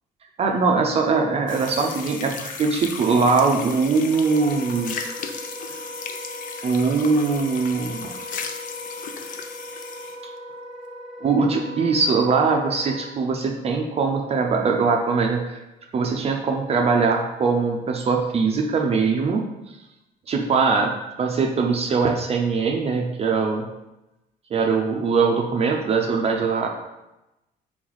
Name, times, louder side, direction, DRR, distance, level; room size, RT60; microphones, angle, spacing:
voice 1, 0.4-4.9 6.6-8.1 11.2-15.6 15.9-19.4 20.3-20.9 21.2-23.7 24.5-26.7, right 4 dB, 35° right, 2 dB, 0.5 m, -21 dB
sound 1, 1.5-10.2, left 6 dB, 55° left, 0.5 m, -36 dB
Wind instrument woodwind instrument, 4.1-13.1, equal, 5° left, 0.7 m, -38 dB
3.4 x 3.2 x 3.9 m, 0.95 s
cardioid pair, 110°, 17 cm